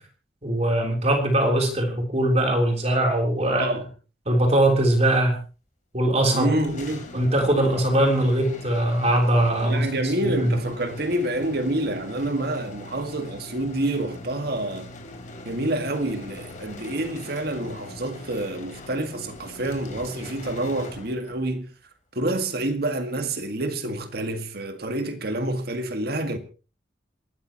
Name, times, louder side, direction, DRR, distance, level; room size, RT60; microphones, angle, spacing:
voice 1, 0.4-3.7 4.3-5.4 5.9-6.5 7.1-9.9 10.2-10.4, right 1 dB, 35° right, 3.5 m, -21 dB
voice 2, 3.5-3.9 6.3-7.1 9.6-14.9 15.5-21.7 22.1-26.4, right 1 dB, 60° right, 1.8 m, -28 dB
sound 1, 6.6-21.5, left 2 dB, 45° left, 3.4 m, -41 dB
27.5 x 13.0 x 3.0 m
head